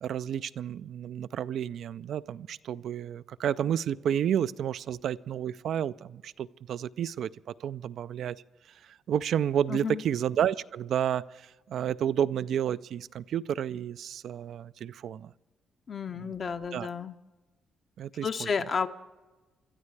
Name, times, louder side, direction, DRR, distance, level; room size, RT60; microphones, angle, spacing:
voice 1, 0.0-7.3 7.6-8.4 9.1-15.3 16.1-16.3 16.7-16.9 18.0-18.5, right 9 dB, 70° right, 0.3 m, -31 dB
voice 2, 9.7-10.0 15.9-17.1 18.2-18.9, left 6 dB, 45° left, 0.8 m, -31 dB
25.0 x 12.5 x 3.3 m
cardioid pair, 90°, 0 cm